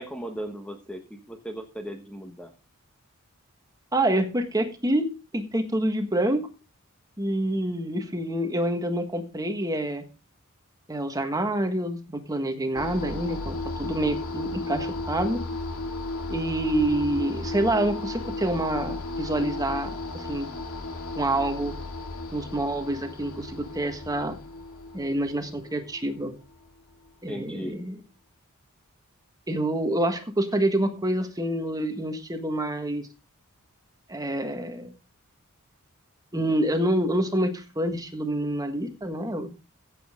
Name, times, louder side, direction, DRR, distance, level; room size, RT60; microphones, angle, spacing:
voice 1, 0.0-2.5 27.3-27.8, equal, 5° left, 5 dB, 1.2 m, -37 dB
voice 2, 3.9-6.5 7.2-10.0 10.9-15.4 16.3-20.5 21.1-21.7 22.3-24.4 24.9-26.3 27.2-28.0 29.5-33.1 34.1-34.9 36.3-39.5, right 1 dB, 15° right, 7 dB, 1.5 m, -27 dB
sound 1, 12.8-26.9, left 2 dB, 90° left, 2.3 m, -34 dB
15.5 x 7.8 x 3.7 m, 0.32 s
head